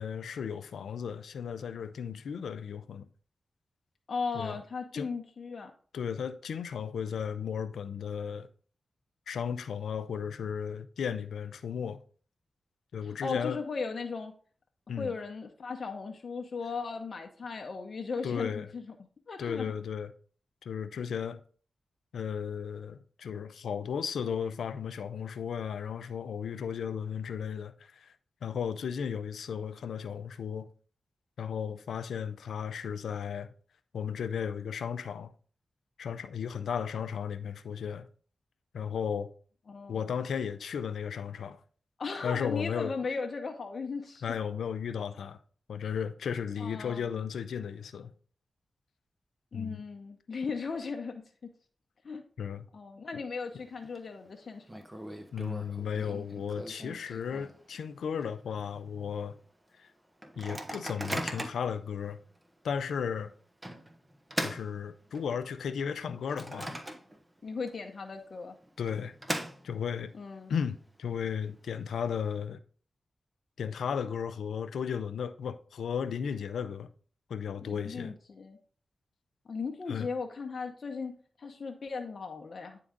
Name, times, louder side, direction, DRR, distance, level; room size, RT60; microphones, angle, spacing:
voice 1, 0.0-3.1 4.3-4.6 4.9-5.1 5.9-8.5 9.3-12.0 12.9-13.6 14.9-15.2 18.2-18.7 19.4-20.1 20.6-21.4 22.1-28.1 28.4-30.7 31.4-33.5 33.9-35.3 36.0-38.1 38.7-39.3 39.9-41.6 42.2-42.9 44.2-45.4 45.7-48.1 49.5-49.8 52.4-52.7 55.3-59.4 59.8-59.9 60.4-62.2 62.6-63.3 64.4-66.7 68.8-69.1 69.6-70.1 70.5-72.6 73.6-76.9 77.3-78.1 79.9-80.1, left 7 dB, 90° left, 0.4 m, -35 dB
voice 2, 4.1-5.7 13.0-14.3 15.0-18.9 19.3-19.7 39.7-40.1 42.0-44.2 46.6-47.2 49.5-51.2 52.0-52.2 52.7-54.7 67.4-68.5 70.1-70.5 77.6-78.6 79.5-82.8, left 4 dB, 65° left, 0.8 m, -37 dB
Microwave oven, 53.4-54.0 54.3-54.4 54.7-57.8 58.2-58.3 58.5-58.9 59.4-59.5 60.2-61.7 62.4-62.5 63.6-65.4 65.9-67.4 67.7-67.8 68.6-70.0, right 1 dB, 20° right, 1.3 m, -39 dB
9.3 x 3.8 x 3.8 m
cardioid pair, 40°, 0 cm